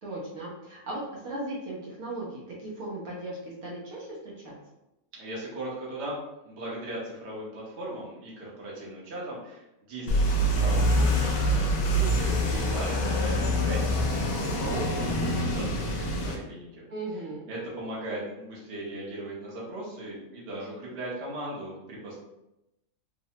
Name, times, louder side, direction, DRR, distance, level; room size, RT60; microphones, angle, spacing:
voice 1, 0.0-4.5 16.9-17.5, right 2 dB, 75° right, -5 dB, 1.3 m, -37 dB
voice 2, 5.1-6.2 6.4-16.9 17.5-22.2, right 1 dB, 55° right, -5 dB, 1.0 m, -38 dB
sound 1, 10.1-16.4, equal, 85° left, 1.1 m, -25 dB
3.2 x 2.0 x 2.7 m, 0.90 s
omnidirectional pair, 1.5 m